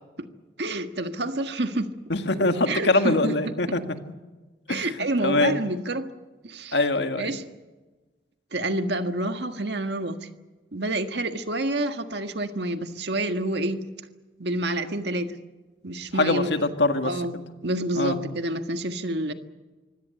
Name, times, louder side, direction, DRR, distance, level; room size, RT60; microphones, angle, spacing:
voice 1, 0.6-1.9 2.7-3.4 4.7-6.1 6.4-6.8 7.2-7.4 8.5-10.2 10.7-13.8 14.4-15.3 15.8-16.5 17.0-17.4 17.6-19.3, right 1 dB, 70° right, 7 dB, 1.6 m, -28 dB
voice 2, 2.1-3.8 4.7-5.5 6.7-7.4 16.1-17.1 17.9-18.2, left 2 dB, 75° left, 7 dB, 1.8 m, -23 dB
25.0 x 16.5 x 8.9 m, 1.2 s
head